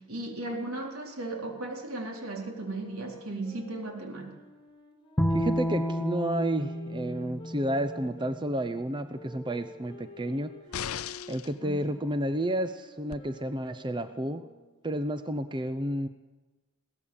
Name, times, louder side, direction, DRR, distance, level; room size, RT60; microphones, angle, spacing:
voice 1, 0.0-4.3 11.6-11.8, right 2 dB, 85° right, 1 dB, 4.1 m, -36 dB
sound 1, 2.6-8.4 9.1-14.7, left 2 dB, 25° left, 4.6 m, -49 dB
Bowed string instrument, 5.2-8.4, equal, 10° left, 1.1 m, -31 dB
voice 2, 5.3-10.5 11.3-14.4 14.8-16.1, right 1 dB, 20° right, 10 dB, 0.7 m, -31 dB
sound 2, 10.7-11.5 13.1-13.2, left 9 dB, 80° left, 0.6 m, -36 dB
22.0 x 17.0 x 7.2 m, 1.2 s
head